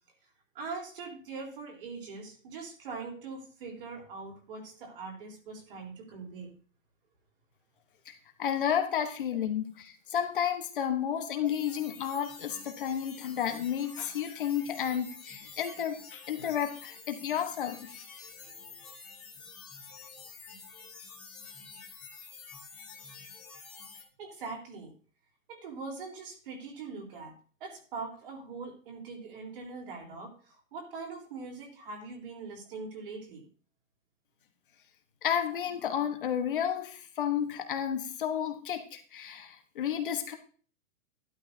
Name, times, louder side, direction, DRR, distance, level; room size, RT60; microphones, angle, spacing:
voice 1, 0.5-6.5 18.4-18.8 24.2-24.9 25.5-27.3 27.6-33.4, right 4 dB, 40° right, 1 dB, 3.7 m, -42 dB
voice 2, 8.4-17.9 35.2-40.4, left 9 dB, 40° left, 6 dB, 1.1 m, -32 dB
sound 1, 11.4-24.0, left 5 dB, 5° left, 0.7 m, -48 dB
12.0 x 11.5 x 2.7 m, 0.40 s
hypercardioid pair, 175°, 41 cm